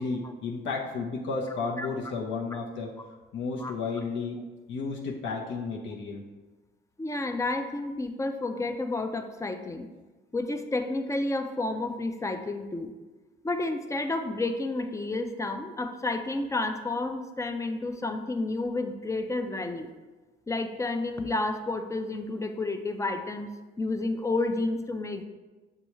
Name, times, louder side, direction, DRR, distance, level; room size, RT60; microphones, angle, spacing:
voice 1, 0.0-2.9 3.3-4.4 4.7-6.2, left 4 dB, 70° left, -2 dB, 0.7 m, -32 dB
voice 2, 7.0-9.9 10.3-12.9 13.4-19.9 20.5-25.2, left 2 dB, 15° left, 7 dB, 0.3 m, -30 dB
6.6 x 2.3 x 3.0 m, 1.2 s
cardioid pair, 90°, 20 cm